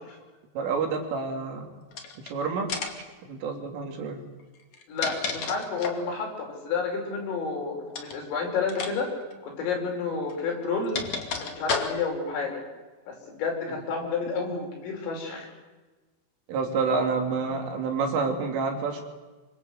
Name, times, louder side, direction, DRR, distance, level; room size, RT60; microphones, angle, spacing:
voice 1, 0.6-1.7 2.3-2.7 3.2-4.3 16.5-19.1, right 4 dB, 75° right, 3 dB, 5.5 m, -28 dB
sound 1, 1.9-2.3 2.7-3.1 4.6-6.1 7.9-8.2 8.7-8.9 9.2-9.3 10.3-12.2, left 5 dB, 40° left, 3.3 m, -32 dB
voice 2, 4.9-9.1 9.4-11.1 11.4-12.6 13.1-15.5 17.4-17.6, left 4 dB, 80° left, 1 dB, 8.3 m, -30 dB
26.0 x 26.0 x 8.1 m, 1.2 s
omnidirectional pair, 5.8 m